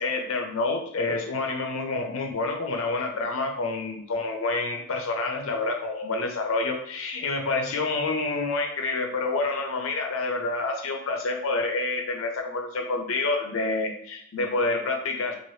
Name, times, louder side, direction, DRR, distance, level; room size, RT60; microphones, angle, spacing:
voice 1, 0.0-15.3, left 3 dB, 70° left, 2 dB, 0.6 m, -28 dB
2.9 x 2.5 x 3.1 m, 0.71 s
head